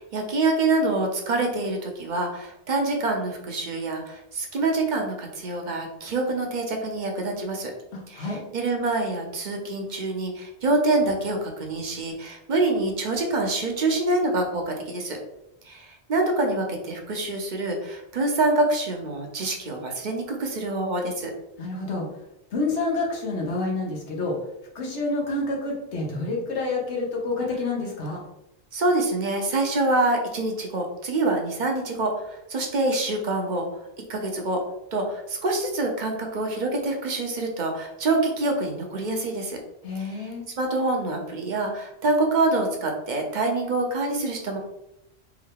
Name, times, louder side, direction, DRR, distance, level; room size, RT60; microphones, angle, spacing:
voice 1, 0.1-7.7 8.1-15.2 15.7-21.3 28.7-33.6 34.1-34.6 34.9-39.6 40.0-40.3 40.6-44.6, right 2 dB, 45° right, 2 dB, 0.9 m, -26 dB
voice 2, 7.9-8.4 21.6-22.1 22.5-24.3 24.7-28.2 39.8-40.4, left 2 dB, 85° left, -2 dB, 1.4 m, -28 dB
4.6 x 2.6 x 3.6 m, 0.85 s
omnidirectional pair, 1.1 m